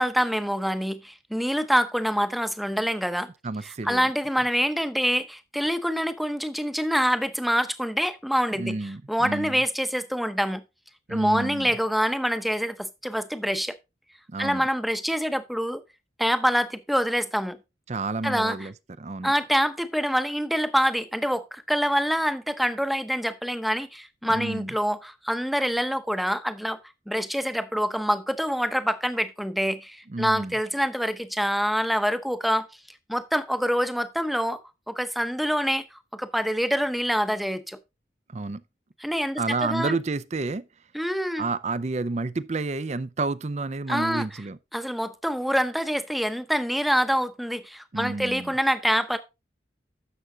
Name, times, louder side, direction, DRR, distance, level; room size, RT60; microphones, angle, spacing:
voice 1, 0.0-3.3 3.6-10.6 11.1-13.7 14.4-15.8 16.2-17.6 18.2-18.7 19.2-26.8 27.1-32.7 33.1-34.6 34.9-35.8 36.1-37.8 39.0-39.9 40.9-41.4 43.9-44.3 44.7-49.2, equal, ahead, 0.8 m, -26 dB
voice 2, 3.4-4.0 8.5-9.6 11.1-11.7 14.3-14.7 17.9-19.3 24.2-24.7 30.1-30.5 38.3-38.6 39.4-40.7 41.4-44.6 47.9-48.5, right 3 dB, 40° right, 0.5 m, -30 dB
11.0 x 7.0 x 3.8 m
head